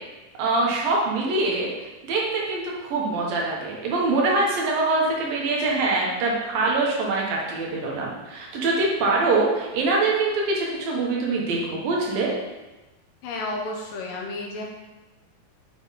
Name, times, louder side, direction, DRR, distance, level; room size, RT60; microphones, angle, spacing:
voice 1, 0.4-12.3, right 3 dB, 70° right, -2 dB, 2.9 m, -24 dB
voice 2, 13.2-14.6, left 2 dB, 70° left, -1 dB, 2.4 m, -31 dB
7.3 x 6.9 x 4.1 m, 1.1 s
omnidirectional pair, 4.5 m